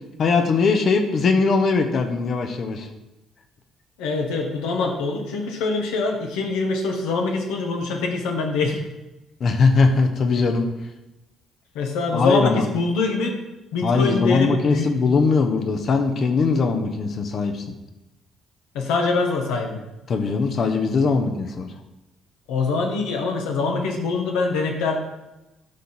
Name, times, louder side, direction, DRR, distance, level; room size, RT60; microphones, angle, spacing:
voice 1, 0.2-2.9 9.4-10.7 12.1-12.6 13.8-17.6 20.1-21.7, left 4 dB, 50° left, 6 dB, 1.1 m, -20 dB
voice 2, 4.0-8.8 11.7-13.4 13.7-14.9 18.7-19.8 22.5-25.0, left 3 dB, 70° left, 2 dB, 1.3 m, -24 dB
11.5 x 4.0 x 4.5 m, 0.99 s
hypercardioid pair, 50°, 0 cm